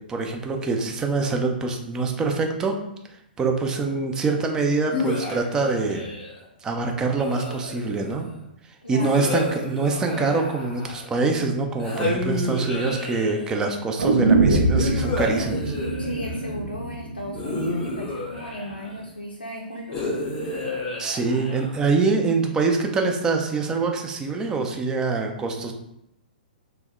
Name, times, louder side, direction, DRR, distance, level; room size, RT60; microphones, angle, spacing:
voice 1, 0.1-2.8 3.4-6.0 6.6-8.3 8.9-15.7 21.0-25.7, right 4 dB, 15° right, 3 dB, 0.3 m, -24 dB
sound 1, 4.9-6.4 7.1-8.1 9.0-11.2 11.8-13.6 14.8-16.5 17.3-19.0 19.9-21.9, left 2 dB, 15° left, 0.7 m, -30 dB
voice 2, 8.8-9.3 16.0-20.1, equal, 85° left, -1 dB, 0.4 m, -36 dB
sound 2, 14.0-18.0 18.3-18.4, right 2 dB, 75° right, 0.4 m, -23 dB
2.7 x 2.0 x 3.5 m, 0.80 s
figure-of-eight pair, 115°, 5 cm